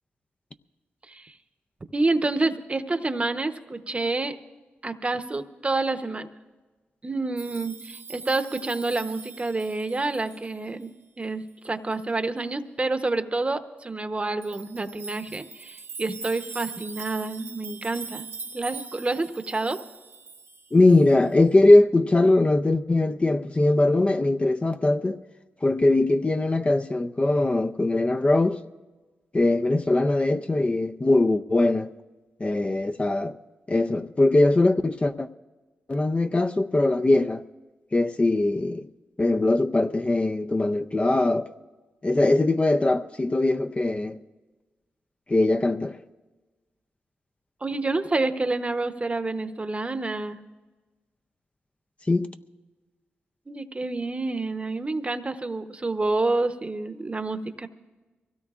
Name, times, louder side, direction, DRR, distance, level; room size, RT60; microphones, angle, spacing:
voice 1, 1.9-4.4 4.8-6.3 7.0-10.9 11.2-18.3 18.5-19.8 47.6-50.4 53.5-57.7, right 2 dB, 30° right, 0.8 m, -28 dB
sound 1, 7.4-10.8 11.5-11.6 11.9-12.0 14.4-21.0, right 4 dB, 70° right, 1.0 m, -41 dB
voice 2, 20.7-25.2 25.6-28.6 29.3-31.9 32.4-33.4 33.7-35.3 35.9-37.4 37.9-38.9 39.2-41.5 42.0-44.2 45.3-46.0 52.1-52.3, left 2 dB, 30° left, 0.5 m, -21 dB
23.0 x 17.0 x 2.4 m
cardioid pair, 55°, 4 cm